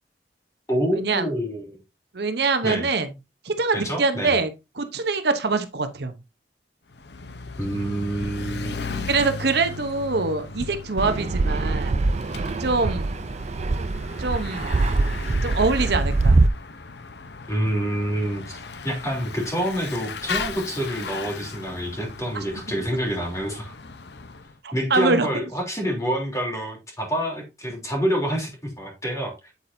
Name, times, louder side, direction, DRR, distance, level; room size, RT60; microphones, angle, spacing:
voice 1, 0.7-1.8 2.6-2.9 3.7-4.3 7.6-9.1 17.5-23.7 24.7-29.5, equal, 20° left, 3.3 m, -27 dB
voice 2, 2.1-3.1 3.4-4.5 4.7-6.1 9.1-11.9 12.6-13.1 14.2-14.8 15.4-16.4 24.6-25.3, right 3 dB, 65° right, 0.9 m, -24 dB
Bicycle / Mechanisms, 6.9-24.5, left 4 dB, 70° left, 0.9 m, -37 dB
Fixed-wing aircraft airplane, 11.0-16.5, right 3 dB, 40° right, 0.4 m, -23 dB
8.4 x 8.4 x 2.7 m
head